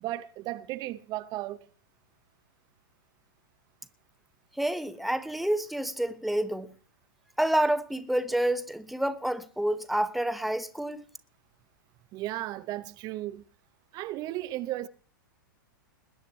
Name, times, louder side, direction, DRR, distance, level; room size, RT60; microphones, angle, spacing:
voice 1, 0.0-1.6 12.1-13.4 13.9-14.9, right 15 dB, 35° right, 0.8 m, -35 dB
voice 2, 4.6-6.7 7.4-11.0, right 1 dB, ahead, 1.0 m, -28 dB
20.5 x 9.1 x 4.5 m
hypercardioid pair, 110°, 11 cm